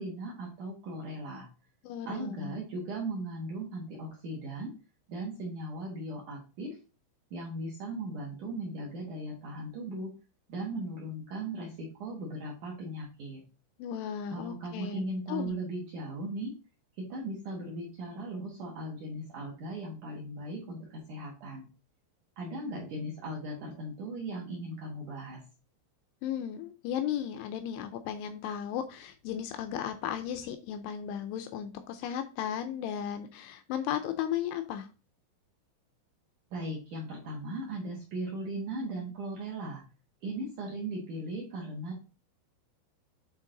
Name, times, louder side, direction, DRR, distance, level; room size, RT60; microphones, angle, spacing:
voice 1, 0.0-1.5 2.1-4.7 5.1-6.8 7.3-10.1 10.5-13.4 14.3-16.5 17.0-21.7 22.4-25.4 36.5-39.8 40.2-42.0, right 1 dB, 60° right, -3 dB, 2.1 m, -38 dB
voice 2, 1.8-2.5 13.8-15.5 26.2-34.9, left 9 dB, 85° left, 8 dB, 2.4 m, -35 dB
9.2 x 3.8 x 3.8 m, 0.32 s
omnidirectional pair, 5.5 m